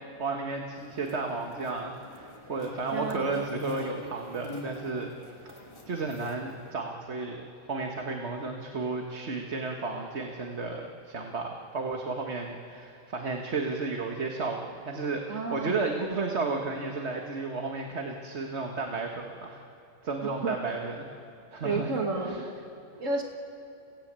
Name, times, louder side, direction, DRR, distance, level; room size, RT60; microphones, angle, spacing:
voice 1, 0.2-5.1 5.4-5.6 5.9-19.6 20.0-21.1 21.5-21.9 22.2-22.5, right 3 dB, 60° right, 2 dB, 1.7 m, -33 dB
sound 1, 0.8-6.7, left 1 dB, 20° left, 2.0 m, -45 dB
voice 2, 2.9-3.4 15.3-15.8 20.2-20.6 21.6-22.4 23.0-23.2, right 3 dB, 80° right, 1 dB, 2.2 m, -31 dB
29.5 x 17.0 x 8.8 m, 2.6 s
omnidirectional pair, 1.3 m